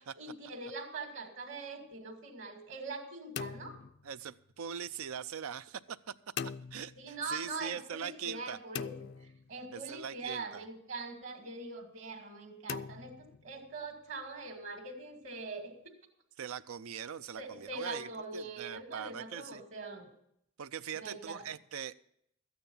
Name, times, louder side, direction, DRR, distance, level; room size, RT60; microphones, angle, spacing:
voice 1, 0.0-3.8 7.0-15.7 17.4-20.1 20.9-21.4, right 3 dB, 65° right, 4 dB, 2.3 m, -43 dB
sound 1, 3.4-4.7 6.4-7.4 8.7-10.0 12.7-13.9, left 7 dB, 55° left, 0.4 m, -43 dB
voice 2, 4.0-6.0 6.4-8.6 9.7-10.6 16.4-19.6 20.6-21.9, right 7 dB, 90° right, 14 dB, 0.5 m, -41 dB
13.5 x 9.5 x 5.5 m, 0.72 s
head